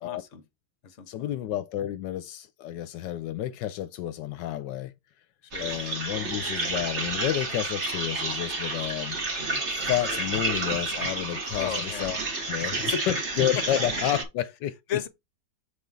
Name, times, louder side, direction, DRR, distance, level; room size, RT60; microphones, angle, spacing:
voice 1, 0.0-0.4 0.8-1.4 5.4-5.7 11.5-12.2 12.6-13.0 13.6-13.7 14.9-15.1, left 9 dB, 50° left, 1.1 m, -34 dB
voice 2, 1.1-4.9 5.6-9.2 9.9-12.1 12.5-14.8, left 12 dB, 80° left, 1.2 m, -30 dB
sound 1, 5.5-14.2, right 2 dB, 40° right, 2.0 m, -30 dB
6.8 x 3.8 x 4.4 m
omnidirectional pair, 2.0 m